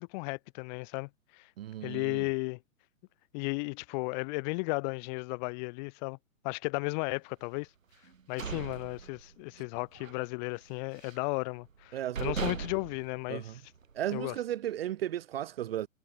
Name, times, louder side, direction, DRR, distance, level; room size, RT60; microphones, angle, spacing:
voice 1, 0.0-1.5 1.8-2.6 3.3-6.2 6.4-7.7 8.3-13.4 14.1-14.4, left 31 dB, 30° left, 3.3 m, -34 dB
voice 2, 1.6-2.2 11.9-12.5 13.3-13.6 13.9-15.9, right 12 dB, 45° right, 1.0 m, -35 dB
sound 1, 8.0-9.6 9.9-10.2 10.6-11.3 11.8-11.9 12.1-14.0, right 6 dB, 70° right, 4.8 m, -39 dB
figure-of-eight pair, 120°, 42 cm